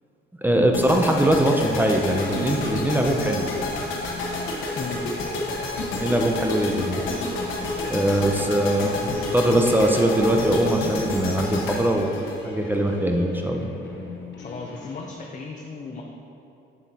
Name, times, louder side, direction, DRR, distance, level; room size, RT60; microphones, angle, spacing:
voice 1, 0.4-3.5 6.0-7.1 7.9-12.2 12.4-13.7, right 1 dB, 10° right, 2 dB, 0.6 m, -21 dB
sound 1, 0.7-12.9, left 2 dB, 85° left, 1.1 m, -29 dB
sound 2, 2.1-15.1, left 4 dB, 60° left, 1.0 m, -43 dB
voice 2, 14.4-16.0, left 4 dB, 40° left, 0 dB, 0.7 m, -35 dB
7.2 x 7.0 x 2.9 m, 2.8 s
cardioid pair, 90°, 20 cm